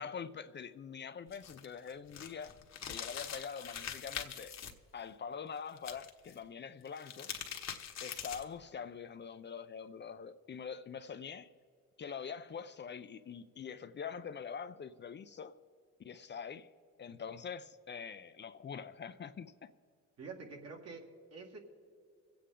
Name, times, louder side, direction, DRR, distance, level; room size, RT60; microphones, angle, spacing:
voice 1, 0.0-2.6 2.9-4.5 4.9-7.3 8.0-11.5 12.0-15.5 16.0-16.7 17.0-19.7, left 6 dB, 35° left, 0.5 m, -44 dB
sound 1, 1.3-4.7 5.8-6.3 6.8-8.6, left 8 dB, 60° left, 1.3 m, -43 dB
voice 2, 20.2-21.6, right 4 dB, 55° right, 2.0 m, -47 dB
24.0 x 8.6 x 3.7 m
cardioid pair, 90°, 30 cm